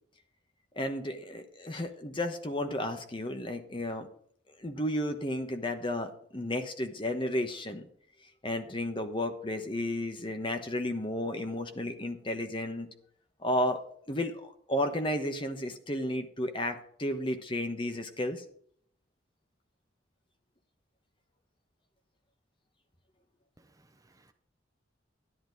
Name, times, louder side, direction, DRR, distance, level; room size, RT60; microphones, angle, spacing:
voice 1, 0.7-4.1 4.6-7.9 8.4-12.9 13.4-13.8 14.1-18.4, left 1 dB, 25° left, 1.1 m, -33 dB
voice 2, 23.6-24.3, right 2 dB, 20° right, 0.8 m, -64 dB
11.0 x 11.0 x 4.0 m
head